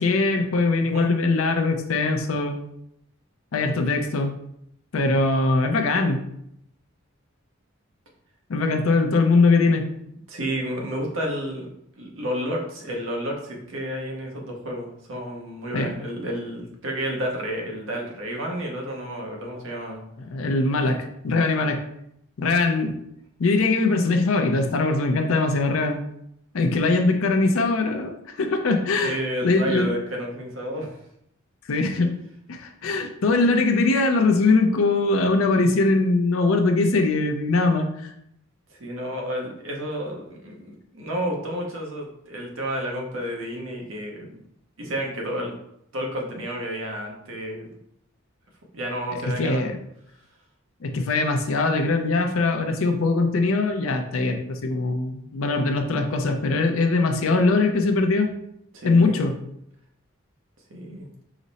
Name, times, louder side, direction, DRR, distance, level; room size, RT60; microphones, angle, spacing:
voice 1, 0.0-2.6 3.5-4.3 4.9-6.2 8.5-9.9 15.7-15.9 20.2-21.8 22.4-23.0 23.4-26.0 26.5-29.9 31.7-32.2 32.5-38.1 49.2-49.8 50.8-58.3 58.8-59.3, left 3 dB, 80° left, 5 dB, 0.5 m, -21 dB
voice 2, 0.8-1.1 10.3-11.7 12.0-20.0 29.0-30.9 38.7-44.4 44.8-45.5 45.9-47.7 48.7-49.8 58.7-59.2 60.7-61.1, equal, 70° right, 0 dB, 0.9 m, -31 dB
5.0 x 2.0 x 4.0 m, 0.76 s
head